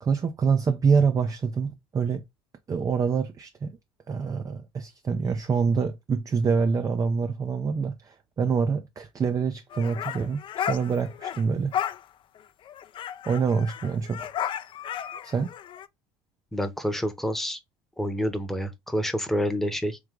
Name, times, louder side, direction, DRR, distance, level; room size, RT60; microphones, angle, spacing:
voice 1, 0.0-2.2 2.7-3.7 4.1-11.8 13.3-14.3 15.2-15.5, right 5 dB, 30° right, 0.5 m, -26 dB
sound 1, 9.7-11.4 11.7-12.0 12.4-12.5 12.7-15.9, left 9 dB, 45° left, 0.4 m, -33 dB
voice 2, 16.5-17.6 18.0-20.0, equal, ahead, 0.9 m, -28 dB
3.3 x 3.2 x 3.6 m
supercardioid pair, 85°, 12 cm